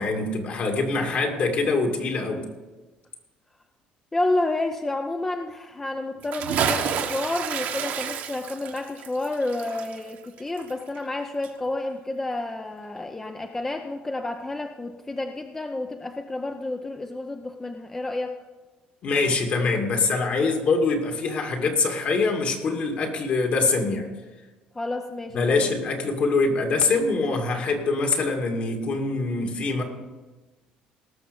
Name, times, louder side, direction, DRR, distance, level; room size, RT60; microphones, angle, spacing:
voice 1, 0.0-2.4 19.0-24.1 25.3-29.8, left 3 dB, 50° left, 2 dB, 2.3 m, -24 dB
voice 2, 4.1-18.4 24.8-25.7, left 2 dB, 15° left, 5 dB, 0.6 m, -30 dB
Bathtub (filling or washing) / Splash splatter, 6.2-11.2 11.4-11.5, right 8 dB, 70° right, 1.3 m, -29 dB
18.5 x 6.6 x 5.3 m, 1.2 s
cardioid pair, 130°, 3 cm